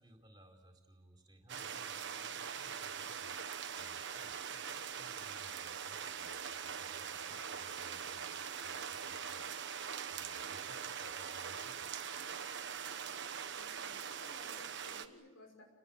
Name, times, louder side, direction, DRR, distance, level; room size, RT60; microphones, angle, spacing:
voice 1, 0.0-3.4 3.8-9.4 10.1-12.1, right 1 dB, 20° right, 4 dB, 4.6 m, -62 dB
sound 1, 1.5-15.1, right 7 dB, 50° right, 1.3 m, -42 dB
voice 2, 13.5-15.6, left 1 dB, 65° left, 0 dB, 6.5 m, -57 dB
29.5 x 19.5 x 9.0 m, 1.0 s
head